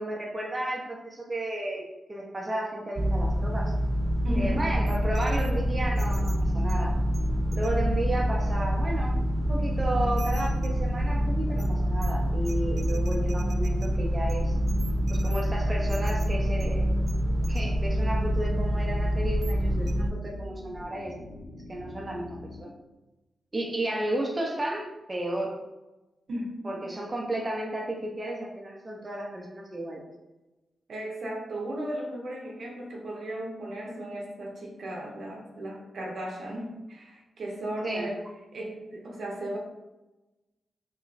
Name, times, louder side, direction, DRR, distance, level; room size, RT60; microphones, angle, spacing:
voice 1, 0.0-3.7 4.3-6.9 7.5-9.2 9.5-14.5 15.1-16.8 17.5-21.1 21.7-22.7 23.5-25.6 26.6-30.0 37.8-38.1, right 1 dB, 30° right, -1 dB, 0.7 m, -33 dB
sound 1, 3.0-20.1, equal, 55° right, 0.3 m, -26 dB
sound 2, 3.4-22.6, left 2 dB, 75° left, 0.4 m, -45 dB
voice 2, 4.2-4.6 26.3-26.8 30.9-38.2 38.5-39.6, right 1 dB, 70° right, -2 dB, 0.7 m, -35 dB
3.1 x 2.2 x 4.0 m, 1.1 s
supercardioid pair, 45°, 0 cm